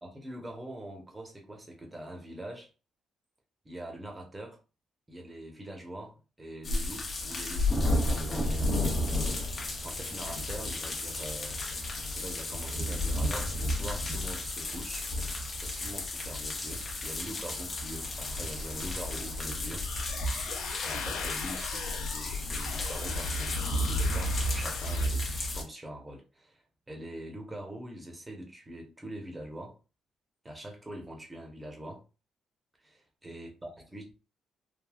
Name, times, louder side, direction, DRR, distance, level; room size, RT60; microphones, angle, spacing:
voice 1, 0.0-2.7 3.6-4.6 5.1-9.0 9.8-11.6 12.1-15.1 15.6-19.9 20.8-29.8 30.4-32.0 32.8-34.2, right 1 dB, 15° right, 0.9 m, -43 dB
sound 1, 6.6-25.6, left 1 dB, 35° left, 0.7 m, -32 dB
sound 2, 17.4-25.1, left 5 dB, 80° left, 0.4 m, -40 dB
3.4 x 2.2 x 2.3 m
cardioid pair, 90°, 0 cm